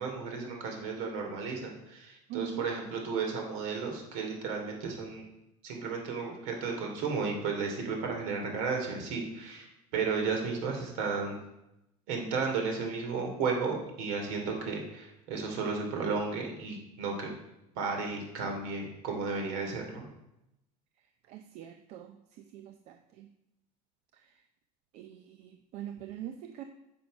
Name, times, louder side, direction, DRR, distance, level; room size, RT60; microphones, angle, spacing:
voice 1, 0.0-5.3 5.6-11.4 12.1-17.3 17.8-20.0, right 4 dB, 65° right, 2 dB, 2.7 m, -33 dB
voice 2, 2.3-2.7 21.3-23.3 24.1-24.3 24.9-26.6, right 10 dB, 45° right, 6 dB, 0.6 m, -43 dB
10.0 x 7.5 x 5.2 m, 0.89 s
cardioid pair, 170°, 16 cm